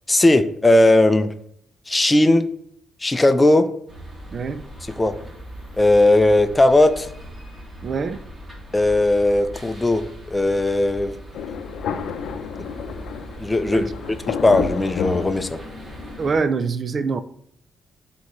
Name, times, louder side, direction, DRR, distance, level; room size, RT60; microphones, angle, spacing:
voice 1, 0.1-1.3 1.9-2.5 3.0-3.7 4.9-5.1 5.8-7.1 8.7-11.1 13.4-15.6, left 2 dB, 15° left, 0.6 m, -17 dB
sound 1, 3.9-16.3, equal, 25° right, 2.5 m, -39 dB
voice 2, 4.3-4.6 7.8-8.2 13.7-13.9 16.2-17.2, right 5 dB, 45° right, 0.5 m, -24 dB
Thunder, 11.3-16.1, left 7 dB, 75° left, 0.6 m, -30 dB
11.5 x 4.1 x 3.2 m
cardioid pair, 90°, 0 cm